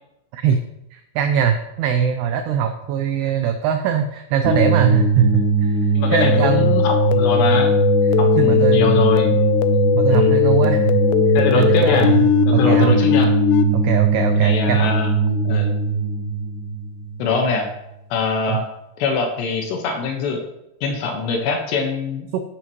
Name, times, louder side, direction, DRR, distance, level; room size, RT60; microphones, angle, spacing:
voice 1, 0.9-5.8 6.1-6.8 8.4-9.0 9.9-10.9 11.5-12.3 12.5-13.0 13.7-15.0 18.5-18.6 22.3-22.4, right 8 dB, 90° right, 6 dB, 2.3 m, -21 dB
sound 1, 4.4-17.6, right 4 dB, 55° right, 2.4 m, -20 dB
voice 2, 5.9-7.7 8.2-9.4 10.1-10.4 11.3-12.1 12.5-13.3 14.4-15.1 15.4-15.8 17.2-17.7 18.1-18.6 19.0-20.4 20.8-22.3, left 4 dB, 70° left, 3 dB, 3.2 m, -23 dB
sound 2, 6.1-13.6, left 10 dB, 90° left, 2.4 m, -19 dB
12.0 x 11.0 x 3.1 m, 0.87 s
omnidirectional pair, 5.7 m